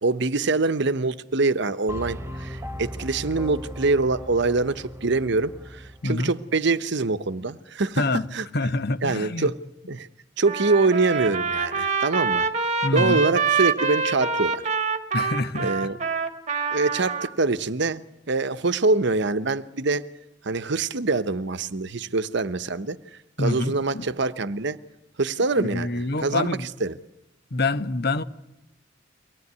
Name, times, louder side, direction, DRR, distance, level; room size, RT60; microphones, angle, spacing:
voice 1, 0.0-8.0 8.3-8.4 9.0-9.6 9.9-10.1 10.4-12.5 12.9-14.6 15.6-16.0 16.7-20.1 20.4-23.0 23.4-24.8 25.2-27.0, right 3 dB, 65° right, 0.9 m, -24 dB
sound 1, 1.9-6.1, equal, 15° right, 1.2 m, -37 dB
voice 2, 8.0-8.3 8.5-9.5 12.8-13.2 15.1-15.7 23.4-24.1 25.6-26.7 27.5-28.2, left 2 dB, 55° left, 1.1 m, -26 dB
Trumpet, 10.5-17.3, right 5 dB, 40° right, 1.8 m, -25 dB
24.0 x 17.5 x 9.6 m
head